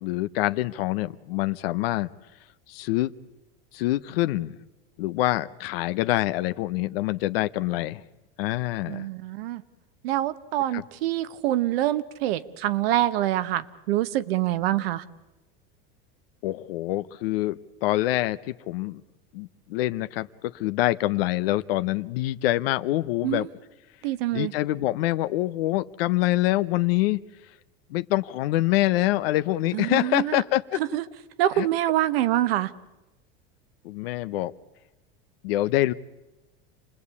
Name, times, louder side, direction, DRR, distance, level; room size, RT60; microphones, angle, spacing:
voice 1, 0.0-2.1 2.7-3.1 3.7-4.5 5.0-8.0 8.4-9.1 10.7-10.8 16.4-19.0 19.3-23.5 24.3-27.2 27.9-30.8 31.6-31.7 33.8-34.5 35.4-35.9, left 16 dB, 80° left, 12 dB, 0.9 m, -25 dB
voice 2, 8.9-9.6 10.0-15.0 23.2-23.5 24.0-24.5 29.7-30.4 30.7-31.0 31.4-32.7, right 14 dB, 80° right, 14 dB, 1.4 m, -25 dB
28.5 x 20.5 x 8.4 m, 1.0 s
supercardioid pair, 125°, 29 cm